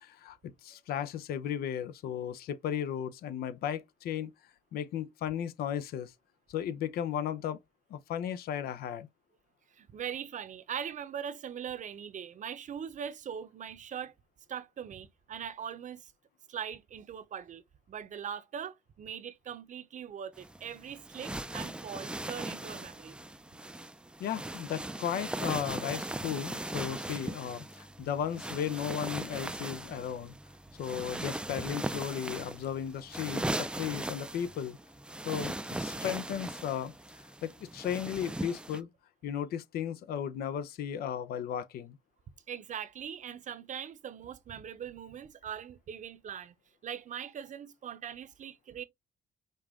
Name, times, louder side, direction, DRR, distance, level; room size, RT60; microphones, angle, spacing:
voice 1, 0.0-4.3 4.7-6.1 6.5-7.6 7.9-9.1 24.2-30.3 30.8-34.8 35.2-38.9 39.2-42.0, left 9 dB, 75° left, 0.6 m, -35 dB
voice 2, 9.7-14.1 14.5-16.1 16.5-17.6 17.9-23.2 42.5-46.5 46.8-48.8, right 8 dB, 55° right, 0.7 m, -41 dB
sound 1, 20.4-38.8, right 1 dB, 5° right, 0.4 m, -39 dB
5.3 x 2.4 x 3.6 m
cardioid pair, 85°, 16 cm